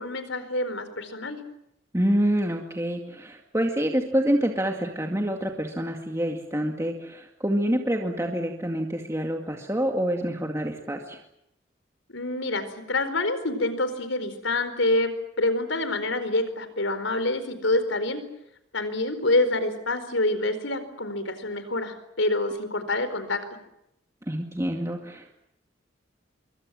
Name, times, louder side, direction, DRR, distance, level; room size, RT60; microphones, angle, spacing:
voice 1, 0.0-1.4 12.1-18.2 18.7-23.4, left 2 dB, 80° left, 11 dB, 4.5 m, -27 dB
voice 2, 1.9-11.2 24.3-25.3, equal, 15° right, 2 dB, 2.1 m, -27 dB
26.5 x 23.5 x 7.7 m, 0.80 s
head